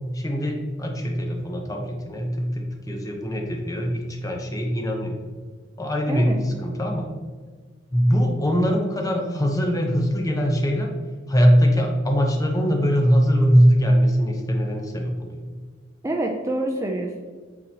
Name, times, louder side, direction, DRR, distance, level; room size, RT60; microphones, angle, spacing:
voice 1, 0.1-5.2 5.8-7.1 7.9-10.9 11.3-15.4, equal, 20° left, 2 dB, 0.8 m, -21 dB
voice 2, 6.1-6.4 16.0-17.2, right 1 dB, 15° right, 1 dB, 0.4 m, -26 dB
8.5 x 3.9 x 2.8 m, 1.5 s
head